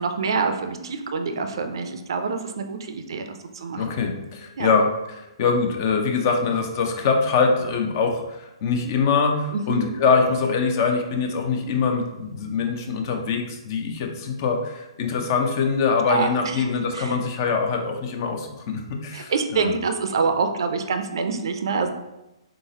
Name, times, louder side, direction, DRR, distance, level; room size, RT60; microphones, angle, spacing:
voice 1, 0.0-3.9 4.6-4.7 9.5-9.9 16.1-16.7 16.9-17.1 19.1-21.9, right 4 dB, 55° right, 7 dB, 0.5 m, -26 dB
voice 2, 3.7-19.7, left 5 dB, 40° left, 3 dB, 0.6 m, -23 dB
3.8 x 3.8 x 2.8 m, 0.94 s
figure-of-eight pair, 125°, 3 cm